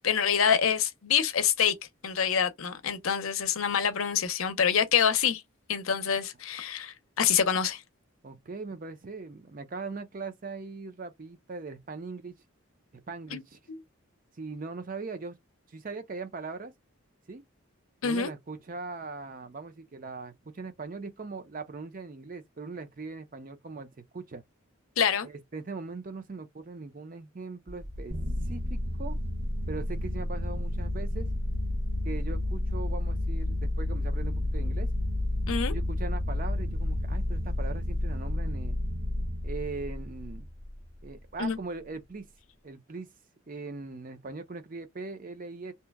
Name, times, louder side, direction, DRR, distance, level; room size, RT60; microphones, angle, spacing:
voice 1, 0.0-1.7 2.0-5.4 5.7-7.8 13.3-13.4 13.7-13.8 18.0-18.3 25.0-25.3 35.5-35.7 41.4-41.6, left 7 dB, 75° left, 0.6 m, -26 dB
voice 2, 8.2-12.3 13.1-13.6 14.4-15.4 15.7-16.7 17.3-17.4 18.0-23.9 24.1-24.4 25.2-28.1 28.5-29.2 29.7-31.3 32.0-34.9 35.7-38.8 39.4-40.5 41.0-42.3 42.6-43.1 43.5-45.7, right 4 dB, 40° right, 0.5 m, -40 dB
sound 1, 27.7-38.3, equal, 60° right, 1.1 m, -43 dB
sound 2, 28.1-41.0, left 1 dB, 80° right, 1.0 m, -31 dB
2.8 x 2.1 x 3.4 m
head